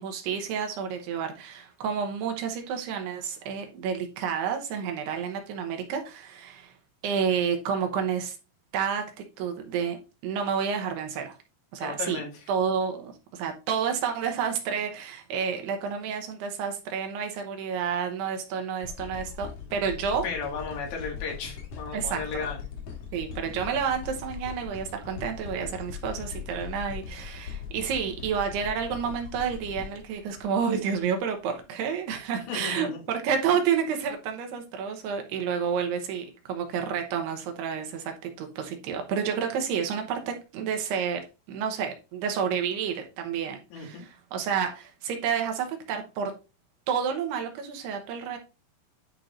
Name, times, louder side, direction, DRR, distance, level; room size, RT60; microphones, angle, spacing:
voice 1, 0.0-6.7 7.0-8.4 8.7-9.1 9.4-11.4 11.7-12.2 12.5-20.2 21.9-22.5 23.1-46.3 46.9-48.4, right 7 dB, 80° right, 2.9 m, -30 dB
voice 2, 11.8-12.5 20.2-22.6 32.5-33.0 43.7-44.1, left 5 dB, 90° left, 4.1 m, -34 dB
sound 1, 18.8-31.0 31.6-31.7, left 7 dB, 60° left, 2.5 m, -40 dB
10.5 x 4.5 x 2.5 m
omnidirectional pair, 4.9 m